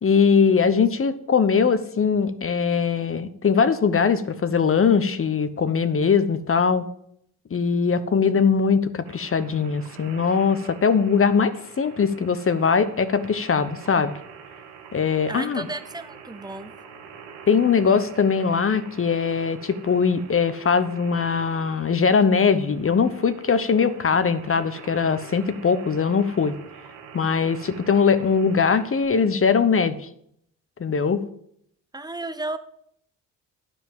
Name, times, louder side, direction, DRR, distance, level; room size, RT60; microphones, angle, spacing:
voice 1, 0.0-6.8 7.5-14.1 14.9-15.7 17.5-26.6 27.1-30.0 30.8-31.2, left 6 dB, 30° left, 12 dB, 0.9 m, -21 dB
sound 1, 9.1-29.1, right 6 dB, 80° right, 1.4 m, -45 dB
voice 2, 15.3-16.7 31.9-32.6, right 2 dB, 10° right, 11 dB, 0.9 m, -33 dB
9.7 x 5.1 x 7.5 m, 0.70 s
supercardioid pair, 60°, 41 cm